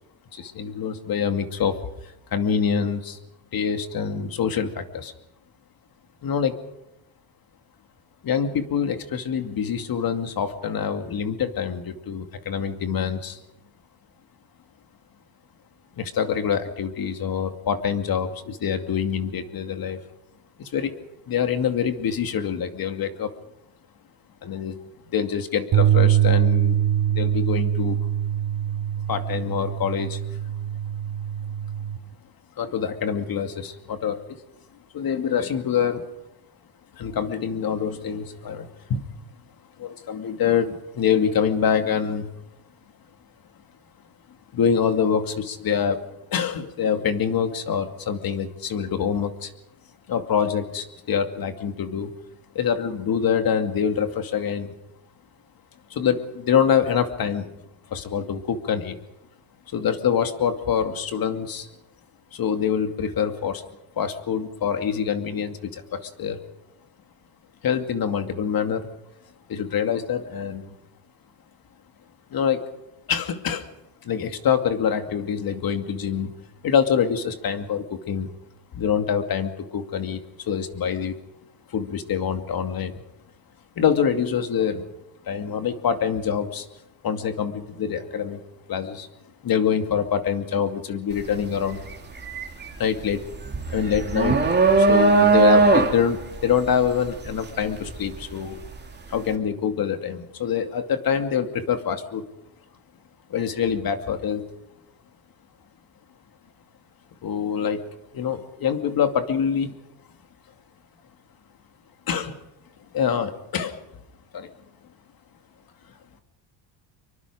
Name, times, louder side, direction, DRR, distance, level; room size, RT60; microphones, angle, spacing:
voice 1, 0.3-1.8 2.3-3.2 3.5-5.1 6.2-6.6 8.2-13.4 16.0-20.0 20.6-20.9 21.3-23.3 24.4-24.8 25.1-26.8 27.1-28.0 29.1-30.2 32.6-34.3 34.9-36.1 36.9-39.0 39.8-42.3 44.5-46.0 46.3-49.5 50.1-52.1 52.5-54.7 55.9-57.5 57.9-59.0 59.7-61.7 62.3-63.6 64.0-66.4 67.6-68.9 69.5-70.7 72.3-72.7 73.1-73.7 74.0-76.3 76.6-78.3 78.7-81.2 81.7-83.0 83.8-84.8 85.2-86.7 87.0-88.4 88.7-89.1 89.4-91.8 92.8-93.3 93.7-94.5 94.8-98.6 99.1-102.2 103.3-104.4 107.2-107.8 108.1-109.8 112.1-112.4 112.9-113.8 114.3-114.5, left 7 dB, 45° left, 7 dB, 2.5 m, -25 dB
sound 1, 25.7-32.0, right 10 dB, 50° right, 3.1 m, -23 dB
sound 2, 91.1-91.4 91.7-98.7, right 3 dB, 20° right, 2.7 m, -19 dB
25.0 x 23.5 x 5.1 m, 0.87 s
cardioid pair, 110°, 49 cm